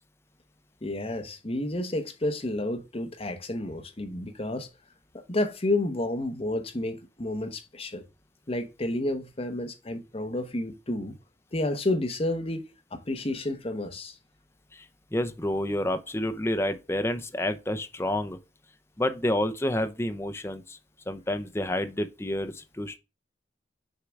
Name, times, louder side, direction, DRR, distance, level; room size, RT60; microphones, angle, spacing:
voice 1, 0.8-4.7 5.1-8.0 8.5-11.1 11.5-12.6 12.9-14.2, left 1 dB, 35° left, 1.0 m, -30 dB
voice 2, 15.1-18.4 19.0-20.8 21.1-23.0, left 1 dB, 15° left, 0.7 m, -29 dB
6.6 x 3.8 x 4.6 m
head